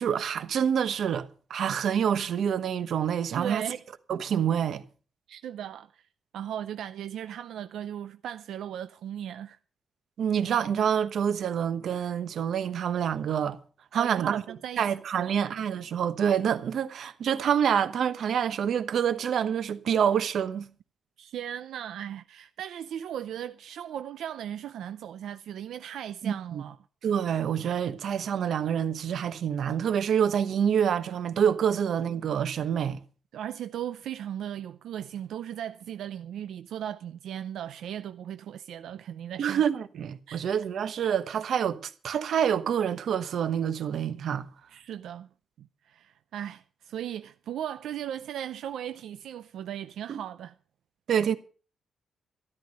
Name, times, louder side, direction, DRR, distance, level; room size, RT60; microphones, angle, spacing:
voice 1, 0.0-3.7 4.1-4.8 10.2-13.6 13.9-14.4 14.8-20.7 26.2-26.6 27.0-33.0 39.4-44.5 50.1-50.2 51.1-51.4, right 8 dB, 60° right, 1.1 m, -27 dB
voice 2, 3.4-3.8 5.3-6.0 6.3-9.6 13.9-14.9 15.1-15.3 21.2-26.8 33.3-39.6 40.3-40.4 44.7-45.3 45.6-50.6, right 10 dB, 85° right, 0.6 m, -37 dB
13.0 x 13.0 x 5.3 m
wide cardioid pair, 160°, 0 cm